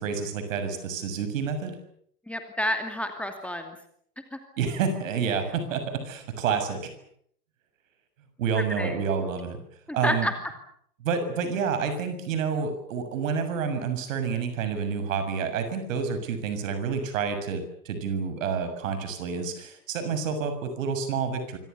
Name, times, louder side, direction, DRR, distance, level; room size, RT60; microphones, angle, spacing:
voice 1, 0.0-1.8 4.6-6.9 8.4-9.6 9.9-10.3 11.0-21.6, right 6 dB, 50° right, 9 dB, 7.0 m, -29 dB
voice 2, 2.3-3.8 4.3-4.4 8.6-9.0 10.0-10.3, left 1 dB, 5° left, 5 dB, 2.5 m, -29 dB
26.0 x 25.5 x 7.0 m, 0.66 s
figure-of-eight pair, 105°, 48 cm